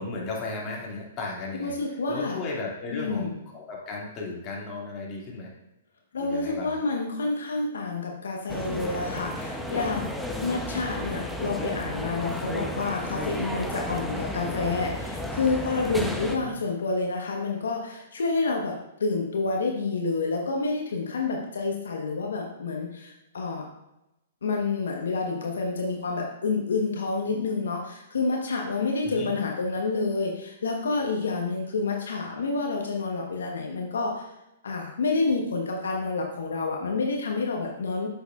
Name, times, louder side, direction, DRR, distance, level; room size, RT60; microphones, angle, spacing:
voice 1, 0.0-1.8 2.1-5.5 6.2-6.8 16.4-16.5 29.0-29.3, left 3 dB, 30° left, -3 dB, 2.2 m, -35 dB
voice 2, 1.6-2.4 2.9-3.4 6.1-10.1 10.4-23.7 24.4-34.3 34.6-38.1, left 3 dB, 80° left, 1 dB, 1.0 m, -28 dB
sound 1, 8.5-16.4, left 1 dB, ahead, 0.6 m, -33 dB
7.9 x 6.5 x 2.4 m, 0.92 s
hypercardioid pair, 130°, 0 cm